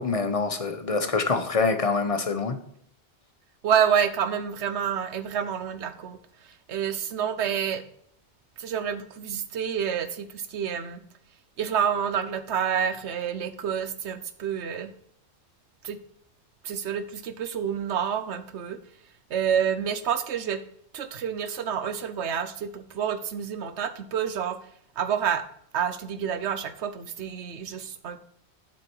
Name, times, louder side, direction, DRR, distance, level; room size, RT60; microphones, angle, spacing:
voice 1, 0.0-2.6, left 4 dB, 35° left, 0.9 m, -25 dB
voice 2, 3.6-7.8 8.6-11.0 11.6-14.9 15.8-16.0 16.6-18.8 19.3-20.6 20.9-24.7 25.0-25.4 25.7-28.2, right 8 dB, 85° right, 1.1 m, -28 dB
7.4 x 6.4 x 4.6 m
omnidirectional pair, 1.1 m